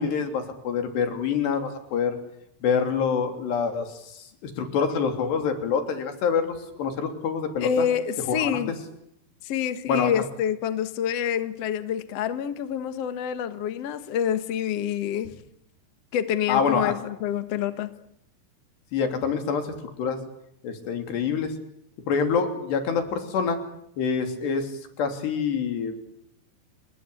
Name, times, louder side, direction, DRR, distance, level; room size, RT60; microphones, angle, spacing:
voice 1, 0.0-2.2 2.6-7.9 8.3-8.6 9.9-10.1 16.5-16.9 18.9-20.2 20.6-21.5 22.1-23.6 24.0-24.7 25.0-26.0, left 6 dB, 80° left, 6 dB, 5.3 m, -26 dB
voice 2, 7.6-8.7 9.4-15.3 16.1-17.9, left 8 dB, 55° left, 10 dB, 1.9 m, -27 dB
29.0 x 21.0 x 8.5 m, 0.77 s
omnidirectional pair, 4.8 m